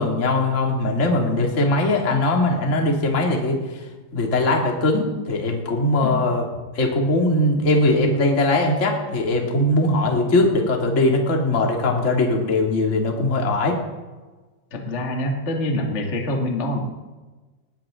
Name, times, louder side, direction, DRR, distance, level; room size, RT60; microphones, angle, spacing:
voice 1, 0.0-3.8 4.1-6.4 6.7-13.8, left 2 dB, 25° left, 0 dB, 1.7 m, -20 dB
voice 2, 14.7-16.8, left 1 dB, 70° left, 1 dB, 0.6 m, -25 dB
19.5 x 18.5 x 3.9 m, 1.3 s
omnidirectional pair, 5.6 m